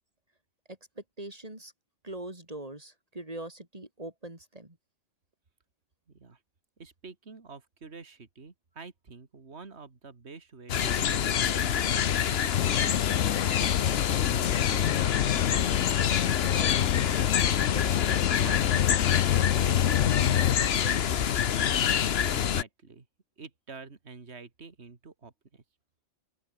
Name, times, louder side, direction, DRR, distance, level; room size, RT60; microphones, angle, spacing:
voice 1, 0.7-1.7 2.0-4.8 16.4-21.0, right 1 dB, 25° right, 4.0 m, -43 dB
voice 2, 6.1-6.4 6.8-13.1 13.4-15.3 21.8-22.0 22.3-23.1 23.4-25.6, right 4 dB, 50° right, 2.6 m, -48 dB
sound 1, 10.7-22.6, left 8 dB, 55° left, 1.0 m, -26 dB
sound 2, 12.5-20.6, left 12 dB, 70° left, 1.0 m, -28 dB
open air
omnidirectional pair, 1.4 m